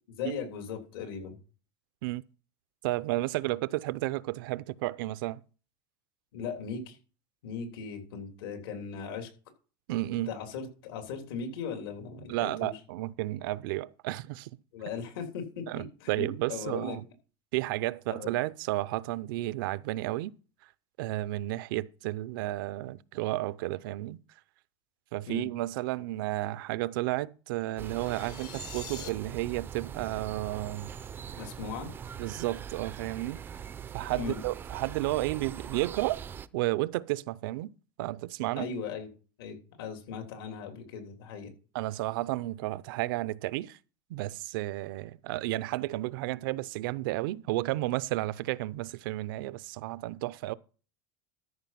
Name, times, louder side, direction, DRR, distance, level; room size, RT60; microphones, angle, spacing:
voice 1, 0.1-1.4 6.3-7.0 7.4-9.3 10.1-12.7 14.7-17.0 18.1-18.3 25.3-25.5 31.4-31.9 34.1-34.4 38.5-39.1 39.4-41.5, left 5 dB, 85° left, 3.2 m, -38 dB
voice 2, 2.8-5.4 9.9-10.4 12.3-14.5 15.7-17.0 17.5-20.3 21.0-24.2 25.1-30.9 32.2-33.4 33.9-36.2 36.5-37.7 38.0-38.7 41.7-43.8 44.1-50.5, right 18 dB, 70° right, 0.5 m, -32 dB
sound 1, 27.8-36.5, right 8 dB, 20° right, 0.4 m, -42 dB
sound 2, 27.9-29.1, left 13 dB, 65° left, 2.0 m, -45 dB
13.5 x 5.3 x 5.8 m
supercardioid pair, 160°, 12 cm